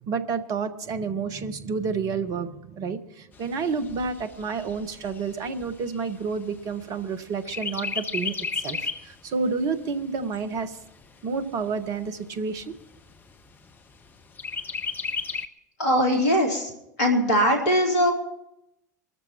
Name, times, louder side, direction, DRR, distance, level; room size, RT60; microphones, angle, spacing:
voice 1, 0.0-10.8 11.2-12.7, right 5 dB, 40° right, 11 dB, 1.3 m, -30 dB
Chirp tweet, 3.3-7.1 7.5-9.1 9.6-9.7 10.0-11.0 11.6-11.7 12.1-12.2 12.6-13.1 14.4-15.5, left 5 dB, 20° left, 0.9 m, -33 dB
voice 2, 15.8-16.7 17.0-18.1, equal, 60° left, 1 dB, 3.9 m, -21 dB
24.5 x 13.5 x 3.0 m, 0.87 s
figure-of-eight pair, 80°, 10 cm